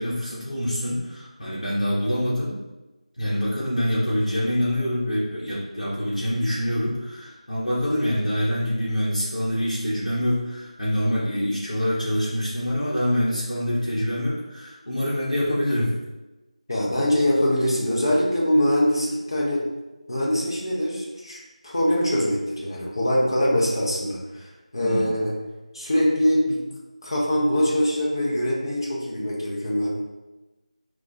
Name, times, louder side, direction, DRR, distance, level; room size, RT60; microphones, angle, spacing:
voice 1, 0.0-2.6 3.2-15.9 24.8-25.1, equal, 65° left, -9 dB, 1.0 m, -25 dB
voice 2, 16.7-19.6 20.1-25.3 25.7-26.6 27.0-29.9, equal, 35° left, -4 dB, 0.7 m, -23 dB
4.1 x 2.3 x 2.7 m, 1.1 s
figure-of-eight pair, 170°, 4 cm